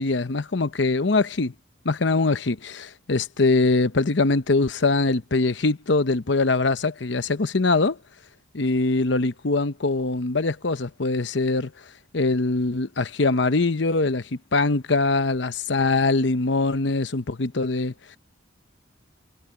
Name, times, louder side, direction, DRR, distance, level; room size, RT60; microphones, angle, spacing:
voice 1, 0.0-1.5 1.8-8.0 8.5-11.7 12.1-17.9, left 3 dB, 65° left, 0.9 m, -23 dB
head